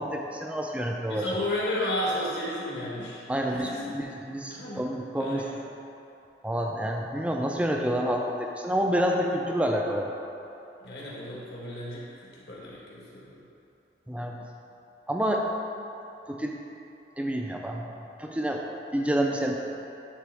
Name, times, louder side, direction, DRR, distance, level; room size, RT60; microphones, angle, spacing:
voice 1, 0.0-1.3 3.3-5.4 6.4-10.2 14.1-14.4 15.1-15.4 16.3-16.6 17.2-17.9 18.2-18.6 18.9-19.6, equal, 5° right, 1 dB, 0.4 m, -28 dB
voice 2, 1.1-3.9 4.5-4.8 5.2-5.5 10.8-13.4, left 1 dB, 65° left, -6 dB, 1.5 m, -33 dB
9.8 x 3.4 x 3.4 m, 2.8 s
head